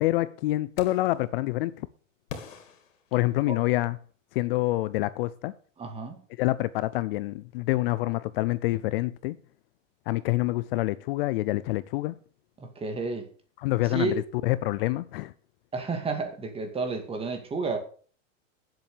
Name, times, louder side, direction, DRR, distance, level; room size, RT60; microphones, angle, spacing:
voice 1, 0.0-1.9 3.1-4.0 4.3-5.5 6.4-9.4 10.1-12.1 13.6-15.3, left 18 dB, 50° left, 0.6 m, -27 dB
sound 1, 0.8-1.2 2.3-3.8, left 7 dB, 80° left, 3.0 m, -44 dB
voice 2, 5.8-6.2 12.6-13.3 13.9-14.1 15.7-17.8, right 3 dB, 15° right, 2.4 m, -31 dB
10.5 x 7.7 x 6.8 m
supercardioid pair, 140°, 38 cm